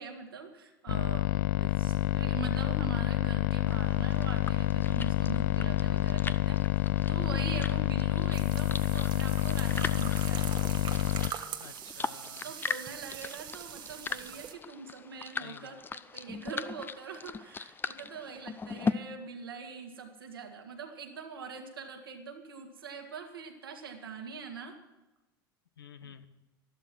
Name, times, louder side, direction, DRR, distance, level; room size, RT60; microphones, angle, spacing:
voice 1, 0.0-10.5 12.4-15.8 16.1-24.8 26.0-26.1, right 5 dB, 85° right, 3 dB, 2.0 m, -43 dB
sound 1, 0.9-11.3, left 18 dB, 60° left, 0.4 m, -28 dB
sound 2, 3.7-18.9, left 5 dB, 20° left, 0.6 m, -40 dB
sound 3, 8.3-14.5, right 10 dB, 45° right, 1.2 m, -43 dB
voice 2, 11.6-12.5 15.4-15.8 25.8-26.3, left 8 dB, 85° left, 12 dB, 0.9 m, -50 dB
13.0 x 12.0 x 6.1 m, 1.0 s
hypercardioid pair, 85°, 12 cm